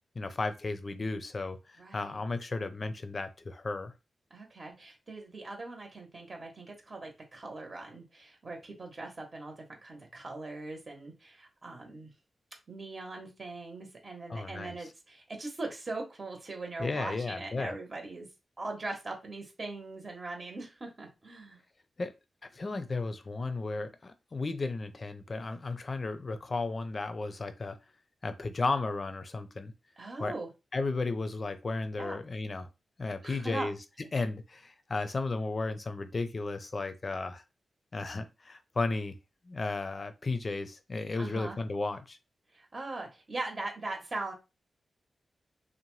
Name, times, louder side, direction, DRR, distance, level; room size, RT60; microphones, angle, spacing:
voice 1, 0.2-3.9 14.3-14.9 16.8-17.8 22.0-22.1 22.5-27.8 28.2-29.7 30.2-30.3 30.7-32.7 33.0-33.8 34.1-37.4 37.9-39.2 39.4-42.2, left 3 dB, 45° left, 0.5 m, -34 dB
voice 2, 1.8-2.2 4.3-9.5 9.8-12.1 12.7-18.3 18.6-21.6 30.0-30.5 32.0-32.2 33.2-33.7 41.2-41.6 42.5-44.3, right 2 dB, 45° right, 0.9 m, -40 dB
2.7 x 2.1 x 3.0 m
cardioid pair, 70°, 0 cm